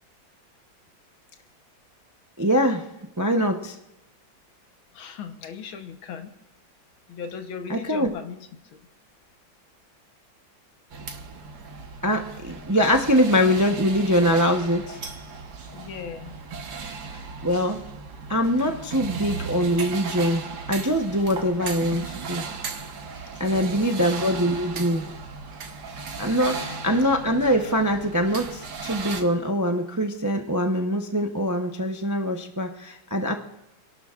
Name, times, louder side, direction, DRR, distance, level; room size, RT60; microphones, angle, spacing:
voice 1, 2.4-2.9 3.2-3.8 7.7-8.1 12.0-15.0 17.1-17.8 18.3-22.4 23.4-25.1 26.2-33.3, equal, 25° right, 3 dB, 0.3 m, -23 dB
voice 2, 4.9-6.3 7.1-8.4 15.7-16.3 23.5-24.1 26.5-27.0, left 6 dB, 90° left, 7 dB, 1.9 m, -38 dB
sound 1, 10.9-29.2, right 5 dB, 55° right, 1.8 m, -36 dB
29.0 x 12.0 x 2.5 m, 0.89 s
omnidirectional pair, 2.1 m